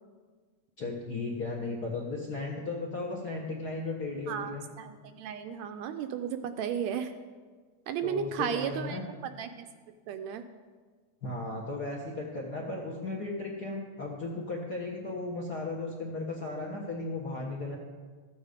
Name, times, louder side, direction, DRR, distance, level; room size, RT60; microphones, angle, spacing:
voice 1, 0.8-4.7 8.0-9.0 11.2-17.8, left 3 dB, 55° left, -2 dB, 1.1 m, -35 dB
voice 2, 4.3-7.1 7.9-9.0 9.4-9.7 10.1-10.4, right 8 dB, 80° right, 8 dB, 1.7 m, -34 dB
13.5 x 8.1 x 5.1 m, 1.5 s
omnidirectional pair, 3.4 m